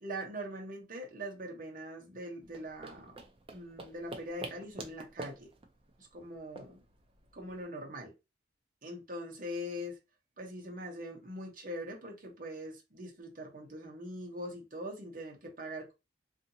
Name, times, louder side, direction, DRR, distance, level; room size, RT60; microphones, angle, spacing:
voice 1, 0.0-3.2 3.5-5.5 6.0-6.8 7.3-8.1 8.8-10.0 10.4-15.9, equal, 45° right, 1 dB, 0.8 m, -42 dB
sound 1, 2.4-7.6, right 2 dB, 30° right, 0.4 m, -47 dB
2.7 x 2.6 x 2.6 m, 0.25 s
head